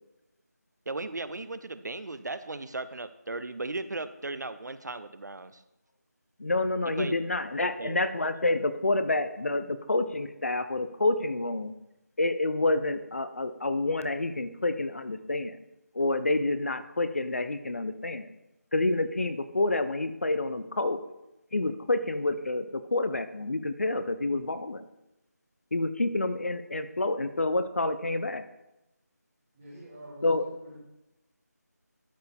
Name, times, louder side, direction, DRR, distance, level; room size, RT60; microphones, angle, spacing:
voice 1, 0.9-5.6 6.9-7.2 7.6-8.2, right 2 dB, 80° right, 13 dB, 0.6 m, -37 dB
voice 2, 6.4-11.7 12.2-15.6 15.9-18.3 18.7-21.0 21.5-24.8 25.7-28.4 30.2-30.5, left 2 dB, 50° left, 12 dB, 0.6 m, -28 dB
voice 3, 29.5-30.8, right 1 dB, 10° right, -11 dB, 1.2 m, -47 dB
12.5 x 4.7 x 3.5 m, 0.92 s
figure-of-eight pair, 175°, 9 cm